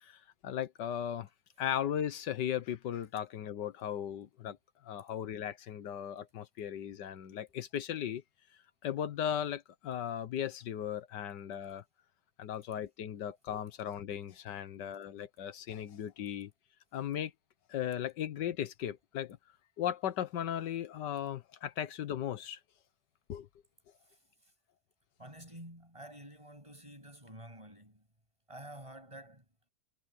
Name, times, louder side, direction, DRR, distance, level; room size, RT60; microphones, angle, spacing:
voice 1, 0.0-1.3 1.6-4.6 4.8-8.2 8.8-11.8 12.4-16.5 16.9-17.3 17.7-19.4 19.8-22.6 23.3-23.5, left 10 dB, 85° left, 1.7 m, -37 dB
voice 2, 24.1-24.5 25.2-28.1 28.5-29.5, right 1 dB, 15° right, 8.1 m, -50 dB
omnidirectional pair, 1.8 m